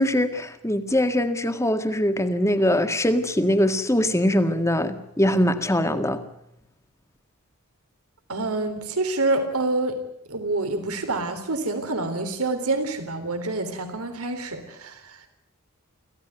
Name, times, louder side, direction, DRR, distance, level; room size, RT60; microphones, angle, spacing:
voice 1, 0.0-6.2, left 1 dB, 15° left, 1.8 m, -22 dB
voice 2, 8.3-10.0 10.3-15.3, right 2 dB, 80° right, 3.7 m, -27 dB
25.0 x 16.0 x 9.4 m
head